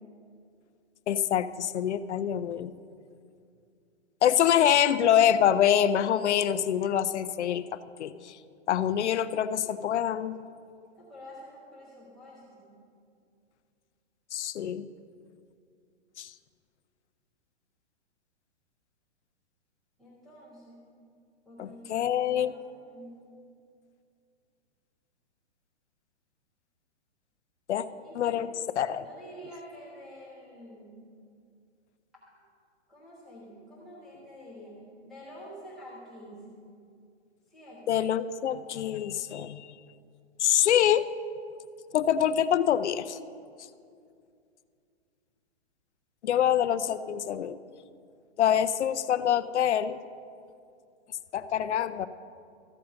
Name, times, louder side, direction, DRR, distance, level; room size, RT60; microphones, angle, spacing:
voice 1, 1.1-2.7 4.2-7.6 8.0-8.3 8.7-10.4 14.3-14.9 16.2-16.3 21.6-22.5 27.7-27.8 28.1-29.1 37.9-39.7 40.4-41.1 41.9-43.2 46.2-47.6 48.4-50.0 51.3-52.1, left 10 dB, 80° left, 13 dB, 0.6 m, -25 dB
voice 2, 11.0-12.8 20.0-20.9 21.5-23.2 27.8-28.4 29.0-31.0 32.9-36.6 37.5-38.0, equal, ahead, -11 dB, 0.5 m, -48 dB
14.0 x 5.1 x 7.0 m, 2.4 s
hypercardioid pair, 180°, 34 cm